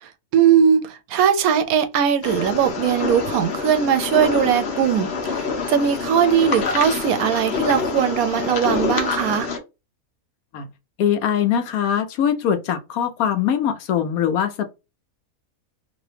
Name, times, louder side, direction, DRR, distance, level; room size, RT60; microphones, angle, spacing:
voice 1, 0.0-9.5, right 8 dB, 80° right, 1.0 m, -20 dB
sound 1, 2.2-9.6, left 5 dB, 55° left, 1.0 m, -26 dB
voice 2, 11.0-14.7, left 9 dB, 85° left, 1.1 m, -22 dB
2.9 x 2.8 x 3.2 m
omnidirectional pair, 1.5 m